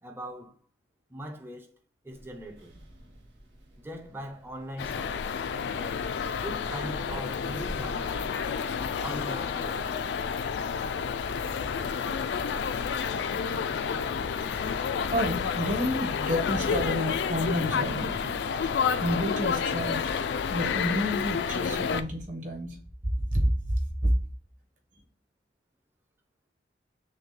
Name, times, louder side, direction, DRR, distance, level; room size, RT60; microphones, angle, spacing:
voice 1, 0.0-0.6 1.1-1.8 2.0-2.7 3.8-5.3 5.7-6.1 6.4-8.3 9.0-10.0, right 1 dB, 15° right, 0.5 m, -40 dB
sound 1, 2.1-18.6, right 1 dB, 85° right, 1.1 m, -49 dB
sound 2, 4.8-22.0, left 6 dB, 70° left, 0.3 m, -30 dB
voice 2, 15.1-18.1 19.0-20.1 20.5-22.8 23.3-23.5 24.0-24.1, equal, 45° right, 1.2 m, -29 dB
6.3 x 2.2 x 3.2 m
head